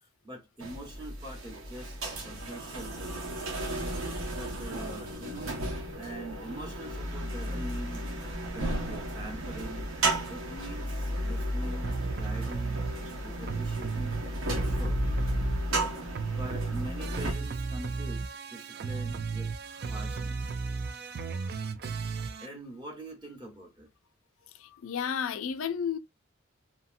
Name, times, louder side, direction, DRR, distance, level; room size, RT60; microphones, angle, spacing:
voice 1, 0.0-2.0 2.2-3.2 4.4-5.6 6.0-8.1 8.5-9.9 10.3-14.1 14.5-15.0 16.3-20.6 22.4-23.9, right 1 dB, 20° right, 0.9 m, -44 dB
sound 1, 0.6-17.3, right 1 dB, 85° right, 1.0 m, -34 dB
sound 2, 11.8-13.0 13.4-15.9 16.1-22.5, right 4 dB, 50° right, 0.3 m, -34 dB
voice 2, 24.6-26.0, left 7 dB, 80° left, 0.4 m, -32 dB
2.8 x 2.7 x 2.4 m
head